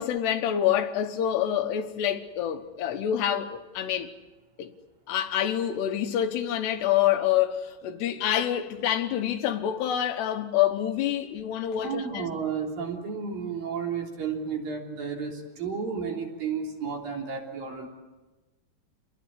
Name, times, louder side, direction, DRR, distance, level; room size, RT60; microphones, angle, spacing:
voice 1, 0.0-4.1 4.6-4.7 5.1-12.3, left 10 dB, 75° left, 3.1 m, -27 dB
voice 2, 11.8-17.9, right 6 dB, 55° right, 5.1 m, -32 dB
29.0 x 21.0 x 8.4 m
omnidirectional pair, 5.0 m